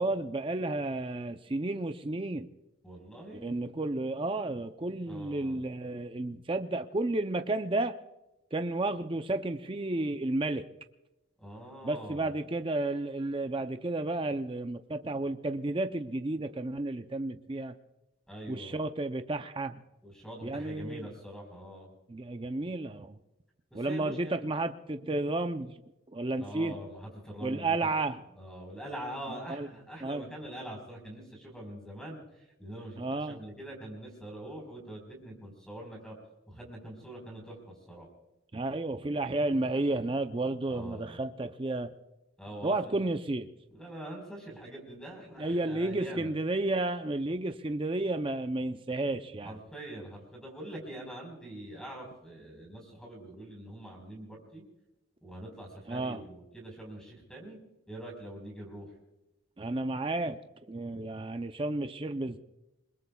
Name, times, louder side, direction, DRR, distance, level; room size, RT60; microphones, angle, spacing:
voice 1, 0.0-2.5 3.3-8.0 8.5-10.7 11.8-17.8 18.5-19.8 20.4-21.1 22.1-23.2 23.7-25.8 26.1-26.7 27.4-28.2 29.5-29.7 30.0-30.2 33.0-33.4 38.5-41.9 42.6-43.5 45.4-49.6 55.9-56.2 59.6-60.4 60.7-62.4, right 2 dB, 25° right, 8 dB, 0.5 m, -32 dB
voice 2, 2.8-3.5 5.0-5.6 11.4-12.3 18.3-18.8 20.0-21.9 23.7-24.4 26.4-27.8 28.3-32.2 32.6-36.2 36.5-37.6 37.9-38.1 40.7-41.2 42.4-43.1 43.7-46.3 49.4-54.6 55.2-57.6 57.9-58.9, right 1 dB, 5° left, 0 dB, 4.4 m, -44 dB
27.5 x 21.5 x 2.3 m, 0.95 s
head